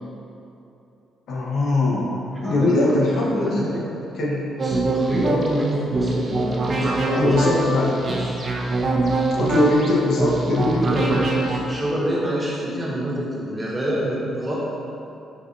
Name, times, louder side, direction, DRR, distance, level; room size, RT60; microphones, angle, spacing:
voice 1, 1.3-2.1 2.4-3.7 4.2-4.5 7.1-8.1 9.4-10.9, left 2 dB, 70° left, -4 dB, 0.7 m, -21 dB
voice 2, 2.3-3.8 4.6-7.5 8.1-8.4 10.8-14.6, equal, 15° right, -6 dB, 0.9 m, -26 dB
sound 1, 4.6-11.6, right 2 dB, 45° right, 0.4 m, -24 dB
5.2 x 2.5 x 2.5 m, 2.8 s
cardioid pair, 90°, 0 cm